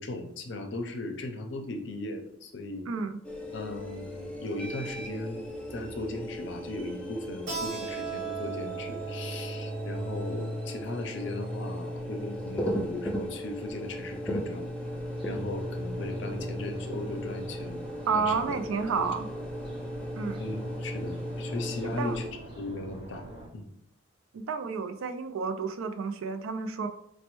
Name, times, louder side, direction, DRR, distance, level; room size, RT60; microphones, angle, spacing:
voice 1, 0.0-2.9 3.5-14.7 15.2-17.8 18.1-18.6 19.0-19.1 20.4-23.3 23.5-23.7, left 2 dB, 60° left, 5 dB, 0.5 m, -37 dB
voice 2, 2.9-3.2 18.1-19.3 20.2-20.4 21.8-22.2 24.3-26.9, right 5 dB, 85° right, 8 dB, 0.4 m, -31 dB
sound 1, 3.2-22.3, equal, 5° left, 0.3 m, -36 dB
Keyboard (musical), 7.5-12.7, right 7 dB, 70° right, 1.1 m, -40 dB
sound 2, 14.8-23.5, right 1 dB, 25° right, 0.7 m, -46 dB
4.2 x 2.1 x 3.0 m, 0.74 s
head